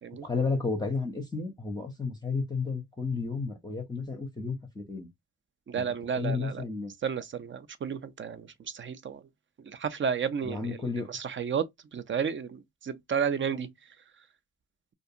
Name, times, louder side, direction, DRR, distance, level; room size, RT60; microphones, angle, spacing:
voice 1, 0.2-5.1 5.8-5.9 6.1-6.9 10.4-11.1, left 4 dB, 10° left, 0.6 m, -32 dB
voice 2, 5.7-6.6 7.0-9.2 9.7-11.7 11.9-13.7, right 7 dB, 35° right, 0.5 m, -32 dB
2.5 x 2.2 x 2.7 m
cardioid pair, 65°, 32 cm